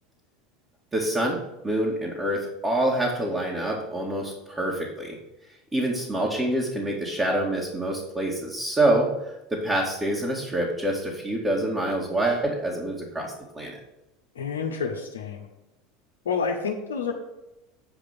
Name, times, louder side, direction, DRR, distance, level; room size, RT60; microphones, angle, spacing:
voice 1, 0.9-1.4 1.6-5.2 5.7-9.1 9.5-13.8, right 1 dB, 20° right, -4 dB, 2.4 m, -26 dB
voice 2, 14.3-15.4 16.2-17.1, left 5 dB, 80° left, -1 dB, 1.2 m, -28 dB
9.2 x 5.1 x 7.3 m, 0.92 s
hypercardioid pair, 80°, 0 cm